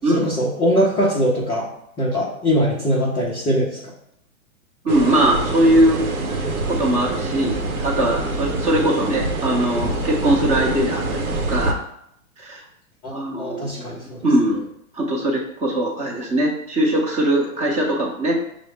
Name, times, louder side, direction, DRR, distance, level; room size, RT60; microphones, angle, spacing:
voice 1, 0.1-1.7 2.0-3.9 13.0-14.2, equal, 10° left, -8 dB, 0.4 m, -22 dB
voice 2, 4.8-6.0 6.7-11.0 11.3-11.8 12.4-12.6 13.1-14.6 14.9-18.4, right 1 dB, 15° right, -2 dB, 0.7 m, -20 dB
sound 1, 4.9-11.7, right 2 dB, 85° right, 0.8 m, -25 dB
6.0 x 2.0 x 3.3 m, 0.74 s
hypercardioid pair, 120°, 42 cm